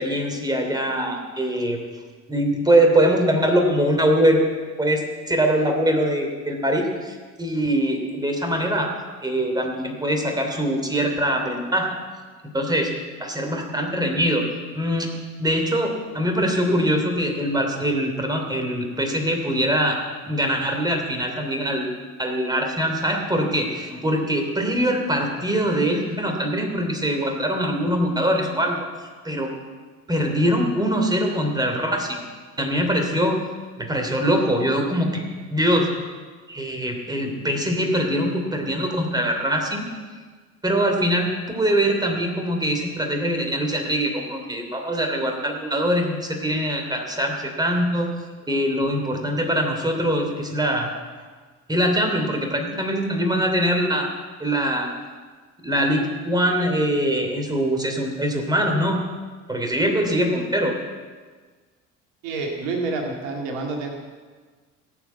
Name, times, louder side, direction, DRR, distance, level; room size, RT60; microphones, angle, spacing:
voice 1, 0.0-1.8 2.3-4.4 4.8-8.9 9.2-11.9 12.5-12.9 13.2-14.4 14.7-15.1 15.4-20.0 20.3-21.9 22.2-28.9 29.2-29.5 30.1-32.2 32.6-33.4 33.8-35.2 35.5-35.9 36.5-39.9 40.6-48.1 48.5-50.9 51.7-54.1 54.4-54.9 55.6-59.0 59.5-60.7, equal, 10° right, 3 dB, 2.9 m, -23 dB
voice 2, 62.2-63.9, right 3 dB, 60° right, 1 dB, 2.1 m, -28 dB
17.5 x 7.2 x 8.2 m, 1.5 s
figure-of-eight pair, 60°, 39 cm